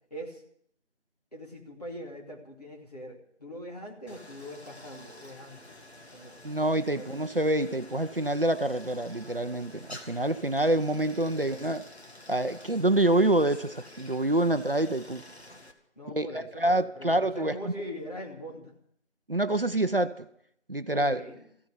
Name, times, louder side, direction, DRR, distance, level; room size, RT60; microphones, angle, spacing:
voice 1, 0.1-0.4 1.3-5.8 6.1-6.4 6.9-7.2 11.3-11.7 16.0-18.7 20.9-21.4, equal, 35° left, -1 dB, 2.5 m, -42 dB
Stream, 4.1-15.7, left 1 dB, 65° left, 2.1 m, -49 dB
voice 2, 6.4-11.9 12.3-15.2 16.1-17.7 19.3-20.3 20.7-21.2, right 1 dB, 50° right, 10 dB, 0.7 m, -26 dB
15.0 x 9.7 x 8.0 m, 0.68 s
figure-of-eight pair, 180°, 35 cm